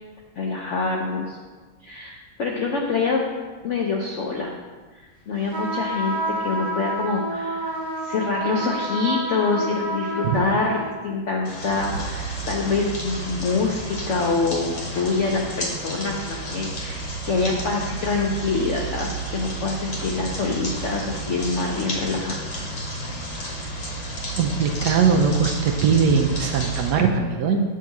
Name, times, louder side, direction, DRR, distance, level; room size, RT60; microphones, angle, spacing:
voice 1, 0.4-1.4 1.8-3.2 3.6-4.5 5.3-7.7 8.0-22.4, left 4 dB, 85° left, 0 dB, 0.6 m, -25 dB
sound 1, 5.5-11.0, right 1 dB, 40° right, 0.6 m, -29 dB
sound 2, 11.4-26.9, right 2 dB, 40° left, 1.0 m, -31 dB
voice 2, 24.4-27.6, right 6 dB, 70° right, 3 dB, 1.1 m, -20 dB
7.4 x 2.8 x 5.8 m, 1.4 s
omnidirectional pair, 2.0 m